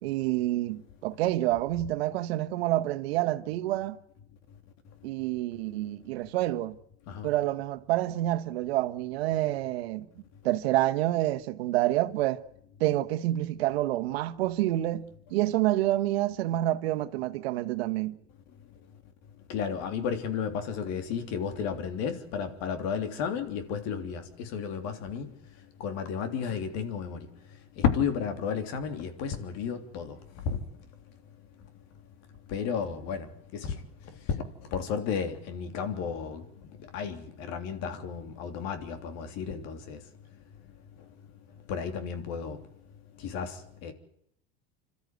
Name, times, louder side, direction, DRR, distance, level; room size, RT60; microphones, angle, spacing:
voice 1, 0.0-4.0 5.0-6.8 7.2-10.1 10.4-12.4 12.8-18.2, right 15 dB, 75° right, 1.4 m, -28 dB
voice 2, 19.5-25.3 25.8-27.3 27.8-30.6 32.5-33.8 34.6-36.5 36.9-40.0 41.7-42.6 43.2-43.9, left 7 dB, 55° left, 3.3 m, -32 dB
26.5 x 13.0 x 9.4 m
supercardioid pair, 125°, 31 cm